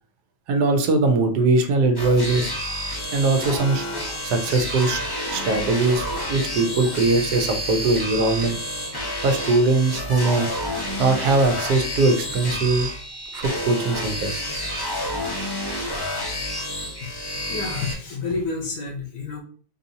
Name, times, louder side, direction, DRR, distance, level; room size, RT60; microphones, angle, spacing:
voice 1, 0.5-2.5 3.1-5.0 5.3-8.6 9.2-10.5 11.0-12.9 13.3-14.5, right 3 dB, 70° right, 6 dB, 1.2 m, -21 dB
sound 1, 2.0-17.9, equal, 25° left, 0.6 m, -29 dB
voice 2, 17.5-19.4, left 4 dB, 75° left, 1 dB, 1.6 m, -29 dB
5.1 x 2.7 x 2.7 m, 0.41 s
omnidirectional pair, 1.8 m